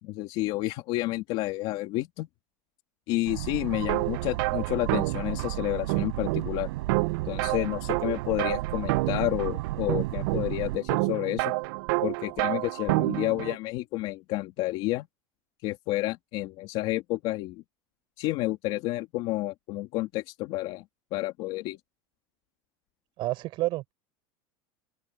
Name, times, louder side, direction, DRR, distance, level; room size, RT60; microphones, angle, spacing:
voice 1, 0.0-2.3 3.1-6.7 7.3-11.5 12.0-15.1 15.6-17.6 18.2-20.8 21.1-21.8, left 18 dB, 45° left, 2.7 m, -30 dB
Boat Water vehicle, 3.3-10.8, right 18 dB, 85° right, 5.6 m, -34 dB
sound 1, 3.7-13.6, right 22 dB, 60° right, 0.5 m, -30 dB
voice 2, 23.2-23.9, right 18 dB, 40° right, 4.4 m, -29 dB
open air
supercardioid pair, 175°, 13 cm